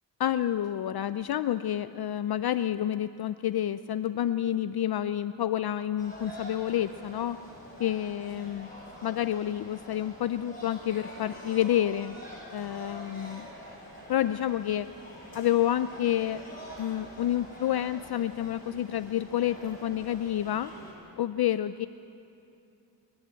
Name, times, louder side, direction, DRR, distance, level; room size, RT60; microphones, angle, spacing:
voice 1, 0.2-7.4 7.8-8.7 9.0-12.2 12.5-13.5 14.1-14.9 15.3-16.4 16.8-20.7 21.2-21.9, left 11 dB, 60° left, 12 dB, 0.5 m, -29 dB
sound 1, 6.0-20.9, equal, 20° left, 6.3 m, -46 dB
28.0 x 11.0 x 9.0 m, 2.7 s
wide cardioid pair, 120°, 43 cm